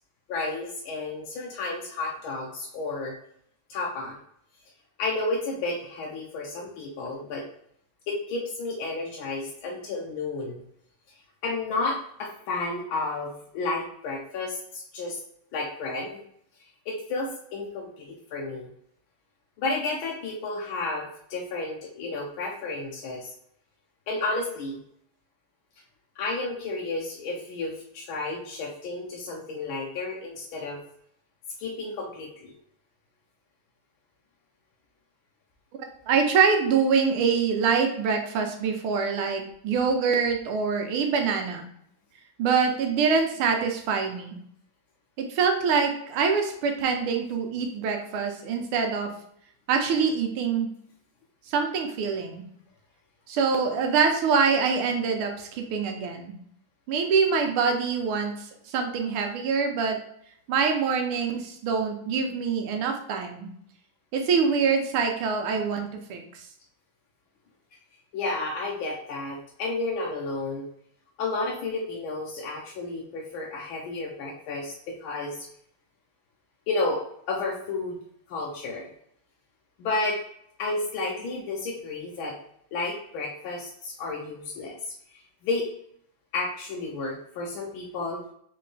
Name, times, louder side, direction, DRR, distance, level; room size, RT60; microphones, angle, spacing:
voice 1, 0.3-3.1 3.7-4.2 5.0-7.4 8.1-10.6 11.4-15.2 15.5-16.2 16.9-18.7 19.6-23.3 24.1-24.8 26.2-30.8 31.6-32.5 68.1-70.7 71.2-75.5 76.7-78.0 78.3-78.9 79.8-80.2 80.6-82.3 82.7-85.7 86.3-88.2, left 3 dB, 75° left, -2 dB, 1.5 m, -32 dB
voice 2, 36.1-41.6 42.4-44.4 45.2-49.1 49.7-50.7 51.5-52.4 53.3-56.4 56.9-60.0 60.5-63.5 64.1-66.5, right 5 dB, 80° right, 4 dB, 1.6 m, -25 dB
4.3 x 3.8 x 3.2 m, 0.69 s
omnidirectional pair, 2.4 m